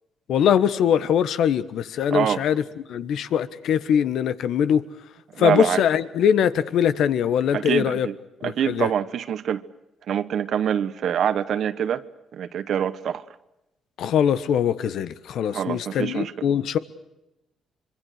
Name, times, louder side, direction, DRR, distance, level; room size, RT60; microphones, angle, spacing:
voice 1, 0.3-2.6 2.9-4.9 5.4-8.1 8.4-8.9 14.0-16.8, left 8 dB, 75° left, 1.3 m, -22 dB
voice 2, 2.1-2.4 5.3-5.8 7.5-8.1 8.4-9.6 10.1-12.0 12.3-13.2 15.5-16.3, right 9 dB, 65° right, 1.1 m, -25 dB
25.0 x 23.5 x 6.6 m
cardioid pair, 90°, 0 cm